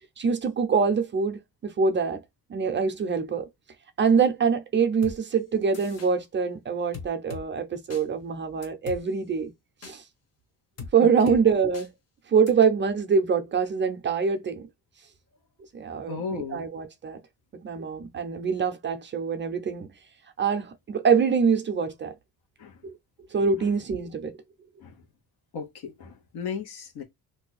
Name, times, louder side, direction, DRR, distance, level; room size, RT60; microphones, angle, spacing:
voice 1, 0.2-2.2 2.5-3.5 4.0-9.5 9.8-10.0 10.9-11.9 12.3-14.7 15.7-17.2 17.6-19.9 20.4-22.1 22.8-22.9 23.3-24.3, right 6 dB, 30° right, 0.4 m, -24 dB
sound 1, 5.0-5.2 5.7-6.1 6.9-7.4 7.9-8.0 8.6-9.0 9.8-10.0 10.8-10.9 11.3-11.4 11.7-11.9 12.5-12.6, left 5 dB, 40° left, 0.8 m, -39 dB
voice 2, 11.0-11.4 16.1-16.6 22.6-22.7 24.8-24.9 25.5-27.0, left 6 dB, 85° left, 1.1 m, -35 dB
2.6 x 2.2 x 3.9 m
cardioid pair, 160°, 38 cm